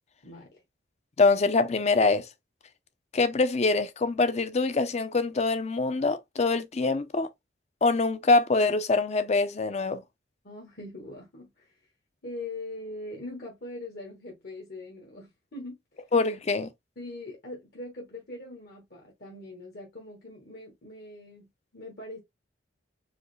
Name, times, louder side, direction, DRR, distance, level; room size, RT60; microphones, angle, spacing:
voice 1, 0.2-0.6 10.4-11.9 12.2-16.0 17.0-22.2, left 2 dB, 55° left, 1.2 m, -42 dB
voice 2, 1.2-2.3 3.1-7.3 7.8-10.0 16.1-16.7, left 3 dB, 35° left, 0.5 m, -24 dB
4.8 x 2.1 x 3.1 m
head